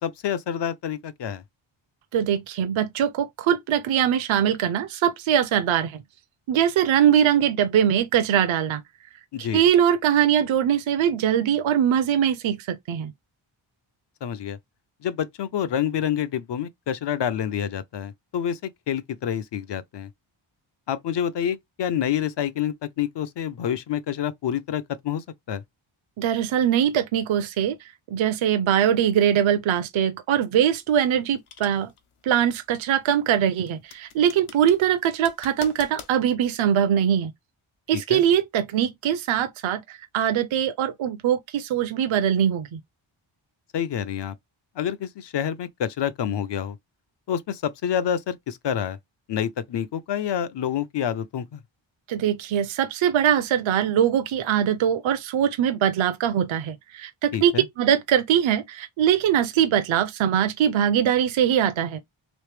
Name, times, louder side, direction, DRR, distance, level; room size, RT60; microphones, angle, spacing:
voice 1, 0.0-1.4 9.3-9.6 14.2-14.6 15.0-20.1 20.9-25.6 37.9-38.2 43.7-44.4 44.8-46.8 47.3-49.0 49.3-51.6 57.3-57.6, left 9 dB, 60° left, 0.5 m, -28 dB
voice 2, 2.1-6.0 6.5-8.8 9.4-13.1 26.2-31.9 32.2-37.3 37.9-42.8 52.1-62.0, right 9 dB, 70° right, 0.6 m, -22 dB
sound 1, 30.5-36.1, left 7 dB, 85° left, 1.0 m, -45 dB
3.2 x 3.1 x 3.2 m
wide cardioid pair, 155°, 49 cm